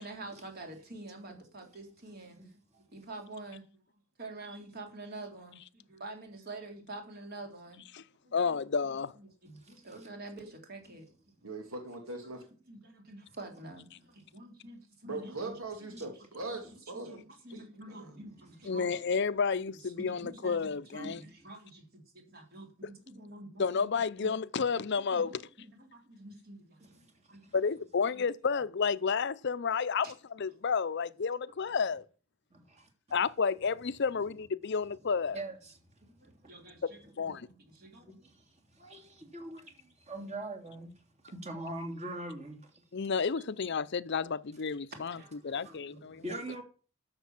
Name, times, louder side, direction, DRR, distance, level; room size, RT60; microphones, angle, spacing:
voice 1, 0.0-2.4 2.9-3.8 4.2-7.8 8.2-11.3 12.7-15.6 15.8-16.0 16.7-19.0 19.7-23.9 24.2-24.3 24.7-24.8 25.1-27.5 28.1-28.2 30.0-30.1 36.0-37.3 37.7-38.2 45.1-45.3 45.6-46.1, right 2 dB, 45° right, 3.6 m, -48 dB
voice 2, 8.3-9.1 18.7-21.2 23.6-25.3 27.5-32.0 33.1-35.4 37.2-37.5 42.9-45.2 45.4-46.2, left 5 dB, 55° left, 0.6 m, -31 dB
voice 3, 11.4-12.5 15.0-18.0 18.6-18.8, right 3 dB, 90° right, 2.4 m, -41 dB
voice 4, 32.5-32.9 35.3-35.8 36.2-36.8 37.4-37.6 37.9-40.9 41.2-42.8 45.4-46.6, right 1 dB, 30° right, 3.0 m, -43 dB
12.0 x 6.8 x 7.2 m
head